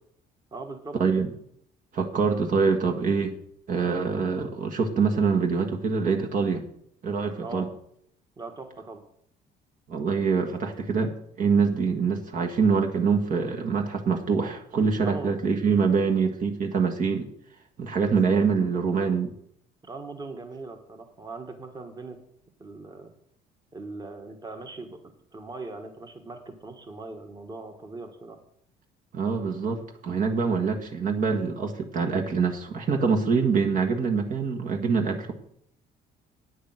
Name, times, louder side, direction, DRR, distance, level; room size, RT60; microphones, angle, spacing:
voice 1, 0.5-1.0 7.4-7.7 8.4-9.0 15.0-15.3 19.8-22.2 22.6-23.1 23.7-25.0 25.3-28.4, right 3 dB, 25° right, 5 dB, 1.6 m, -40 dB
voice 2, 1.9-3.4 3.7-6.6 7.0-7.7 9.9-17.3 17.8-19.3 29.1-35.3, right 5 dB, 50° right, 3 dB, 1.6 m, -25 dB
9.5 x 6.6 x 7.8 m, 0.69 s
cardioid pair, 110°, 17 cm